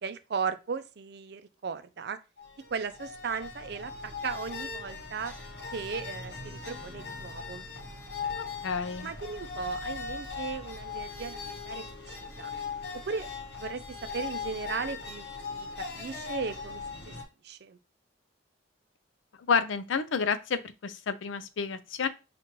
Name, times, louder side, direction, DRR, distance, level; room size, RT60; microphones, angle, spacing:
voice 1, 0.0-2.2 2.7-5.3 5.7-7.6 9.0-12.5 13.1-13.3 13.6-15.7 15.9-17.1 17.4-17.8, right 5 dB, 60° right, 0.4 m, -36 dB
sound 1, 2.4-17.2, left 4 dB, 60° left, 1.0 m, -39 dB
voice 2, 8.4-9.1 19.5-22.1, left 5 dB, 90° left, 0.5 m, -30 dB
5.9 x 2.5 x 3.0 m
head